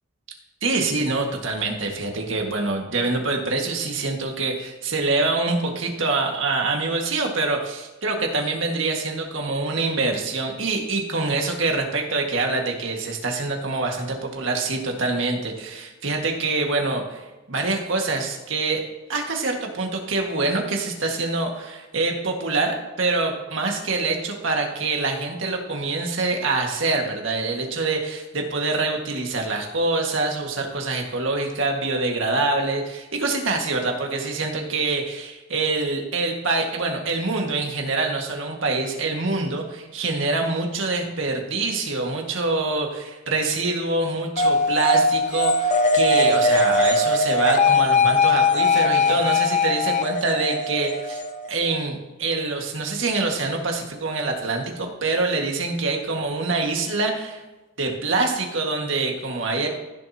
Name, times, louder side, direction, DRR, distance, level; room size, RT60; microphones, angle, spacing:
voice 1, 0.6-17.2 17.5-18.8 19.1-51.2 51.5-57.4 57.8-59.7, right 3 dB, 75° right, 2 dB, 1.7 m, -25 dB
sound 1, 44.4-51.9, left 3 dB, 35° left, 0.7 m, -20 dB
15.5 x 7.3 x 2.8 m, 1.1 s
head